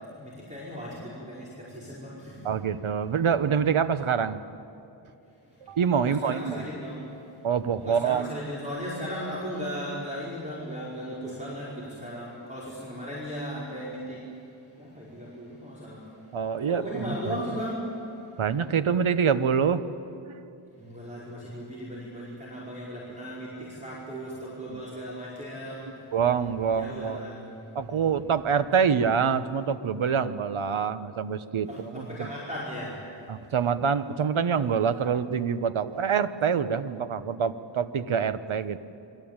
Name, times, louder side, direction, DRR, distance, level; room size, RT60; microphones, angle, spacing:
voice 1, 0.0-2.5 6.0-7.1 7.8-14.2 14.7-16.1 16.7-17.9 20.8-25.9 26.7-27.5 31.6-33.0, equal, 15° right, -6 dB, 5.1 m, -37 dB
voice 2, 2.4-4.4 5.6-6.7 7.4-8.3 16.3-17.4 18.4-19.8 20.2-20.3 24.7-24.8 26.1-27.2 27.7-32.3 33.3-38.8, right 7 dB, 80° right, 12 dB, 1.1 m, -26 dB
29.0 x 22.5 x 8.9 m, 2.7 s
wide cardioid pair, 125°, 48 cm